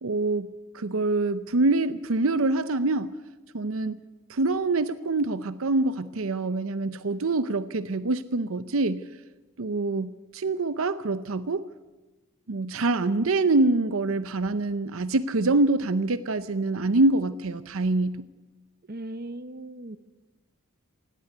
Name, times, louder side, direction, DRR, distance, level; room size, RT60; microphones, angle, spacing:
voice 1, 0.0-3.1 3.5-4.0 4.3-9.0 9.6-11.6 12.5-18.2, right 2 dB, 75° right, 14 dB, 0.7 m, -25 dB
voice 2, 18.9-20.0, right 1 dB, 45° right, 13 dB, 1.0 m, -38 dB
17.5 x 17.0 x 9.8 m, 1.1 s
head